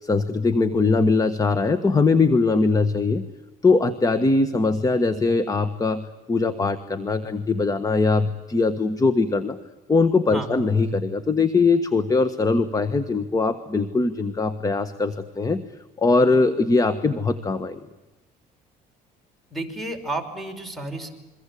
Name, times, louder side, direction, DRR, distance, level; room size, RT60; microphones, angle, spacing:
voice 1, 0.0-3.2 3.6-9.6 9.9-15.6 16.0-17.8, left 3 dB, 20° left, 13 dB, 1.4 m, -21 dB
voice 2, 19.5-21.1, right 2 dB, ahead, 9 dB, 5.4 m, -31 dB
27.5 x 23.5 x 8.5 m, 1.1 s
cardioid pair, 110°, 17 cm